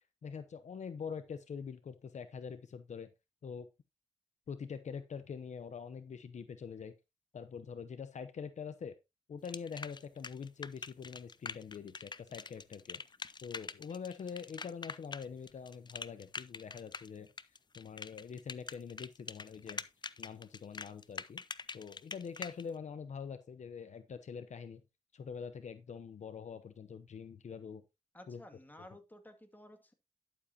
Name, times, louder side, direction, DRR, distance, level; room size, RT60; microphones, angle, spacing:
voice 1, 0.2-3.1 3.4-3.7 4.5-6.9 7.3-8.9 9.3-13.0 13.4-17.3 17.7-19.8 20.2-21.4 21.7-24.8 25.1-27.8 28.3-28.4, left 6 dB, 75° left, 0.8 m, -44 dB
sound 1, 9.5-22.6, left 4 dB, 35° left, 0.5 m, -44 dB
voice 2, 28.1-29.9, left 1 dB, 15° left, 2.3 m, -54 dB
11.5 x 7.3 x 2.9 m
cardioid pair, 65°, 12 cm